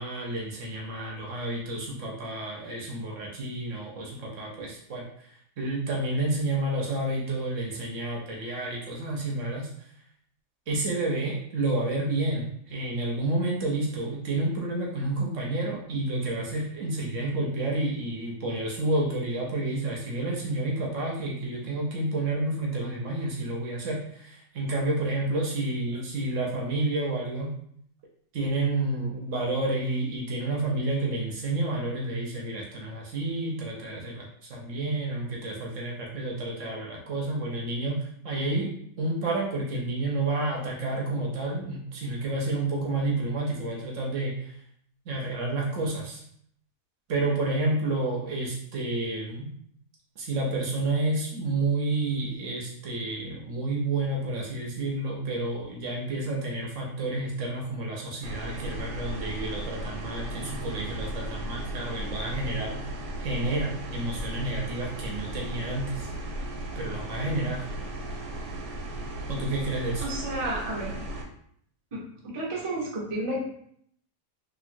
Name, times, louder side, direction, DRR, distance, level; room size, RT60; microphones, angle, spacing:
voice 1, 0.0-9.9 10.7-27.5 28.3-38.7 39.0-44.5 45.1-46.2 47.1-49.5 50.2-62.8 63.2-66.1 66.8-67.7 69.3-70.1, right 2 dB, 65° right, -2 dB, 0.8 m, -30 dB
AC fan w compressor loop, 58.2-71.2, right 1 dB, 85° right, 1.1 m, -36 dB
voice 2, 70.0-70.9 71.9-72.0 72.3-73.5, right 1 dB, 45° right, -4 dB, 0.4 m, -31 dB
3.0 x 2.7 x 2.5 m, 0.67 s
omnidirectional pair, 1.7 m